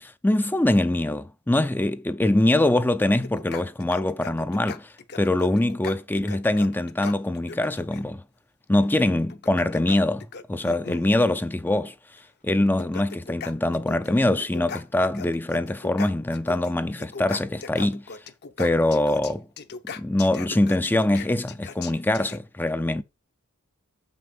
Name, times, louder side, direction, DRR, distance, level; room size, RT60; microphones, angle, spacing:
voice 1, 0.2-8.2 8.7-11.9 12.4-18.0 18.6-19.5 20.0-23.0, left 1 dB, 10° left, 0.4 m, -23 dB
sound 1, 3.2-8.0 9.3-11.1 12.2-12.3 12.7-14.1 14.4-16.7 17.0-22.4, left 5 dB, 50° left, 0.8 m, -39 dB
7.6 x 6.0 x 5.2 m
head